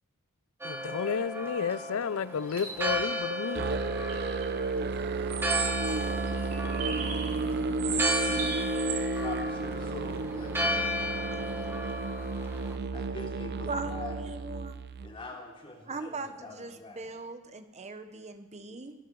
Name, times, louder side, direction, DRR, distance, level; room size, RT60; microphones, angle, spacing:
voice 1, 0.6-3.7, left 6 dB, 70° left, 18 dB, 0.5 m, -32 dB
Church bell, 0.6-12.8, equal, 10° right, 1.7 m, -35 dB
sound 1, 2.4-3.1 4.1-4.5 5.3-7.4 7.8-9.0, right 6 dB, 75° right, 3.7 m, -35 dB
Musical instrument, 3.5-15.1, right 3 dB, 50° right, 0.6 m, -33 dB
voice 2, 9.2-10.5 11.6-11.7 12.9-14.1 15.0-17.0, left 2 dB, 25° left, -1 dB, 3.2 m, -43 dB
voice 3, 13.7-14.8 15.9-18.9, right 3 dB, 30° right, 8 dB, 1.0 m, -39 dB
22.5 x 12.5 x 4.7 m, 1.1 s
head